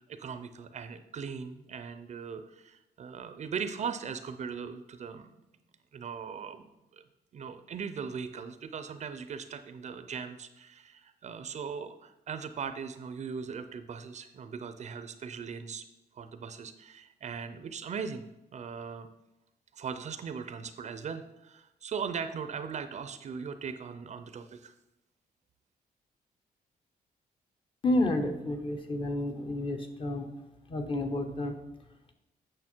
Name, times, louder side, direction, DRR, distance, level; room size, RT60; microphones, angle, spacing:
voice 1, 0.1-5.3 5.9-7.0 7.3-15.8 16.2-18.2 18.5-19.1 19.7-24.7, right 6 dB, 45° right, 10 dB, 0.6 m, -39 dB
voice 2, 27.8-30.3 30.7-31.6, left 1 dB, 35° left, 5 dB, 0.9 m, -30 dB
8.6 x 6.2 x 4.5 m, 0.93 s
wide cardioid pair, 155°, 16 cm